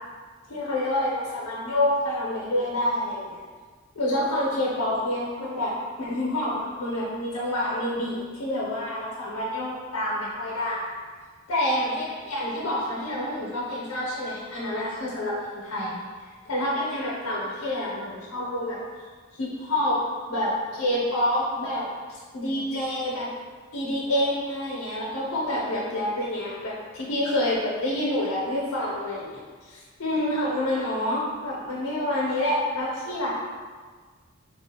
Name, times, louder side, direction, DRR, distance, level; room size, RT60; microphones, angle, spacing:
voice 1, 0.5-3.4 3.9-5.7 6.0-10.9 11.5-18.8 19.4-20.0 20.3-21.9 22.3-23.3 23.7-29.4 29.7-33.3, left 1 dB, 80° left, -5 dB, 0.6 m, -28 dB
3.4 x 2.4 x 2.8 m, 1.5 s
head